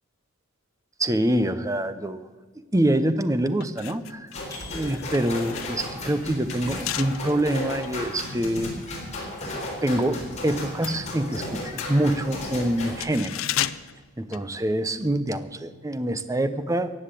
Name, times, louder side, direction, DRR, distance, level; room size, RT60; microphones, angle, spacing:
voice 1, 1.0-2.2 2.7-4.3 4.7-8.7 9.8-13.4 14.2-16.9, right 1 dB, 15° right, 12 dB, 0.6 m, -25 dB
sound 1, 2.9-3.1 3.5-10.1 10.4-15.1 15.4-15.5, left 12 dB, 70° left, 0.5 m, -36 dB
sound 2, 4.3-13.0, left 1 dB, 30° left, 3.9 m, -34 dB
sound 3, 4.5-5.6, left 4 dB, 15° left, 4.0 m, -45 dB
15.0 x 8.8 x 8.4 m, 1.4 s
head